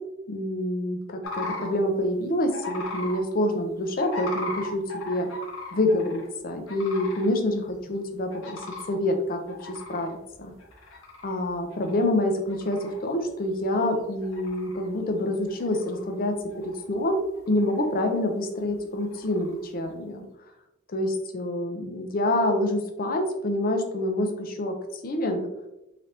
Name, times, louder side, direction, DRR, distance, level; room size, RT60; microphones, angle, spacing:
voice 1, 0.3-5.3 5.7-8.6 8.9-9.4 9.7-10.5 11.2-17.2 17.5-20.2 20.9-25.5, left 1 dB, 45° left, 5 dB, 0.6 m, -27 dB
sound 1, 1.2-1.7 2.5-3.2 4.0-6.3 6.7-7.3 7.7-7.8 8.3-8.9 9.5-11.4 11.7-12.1 12.5-13.0 13.6-13.7 14.1-14.9 15.5-16.2 16.5-17.1 17.4-17.9 19.0-19.6, left 3 dB, 75° left, 0.9 m, -37 dB
3.8 x 3.3 x 2.8 m, 0.92 s
head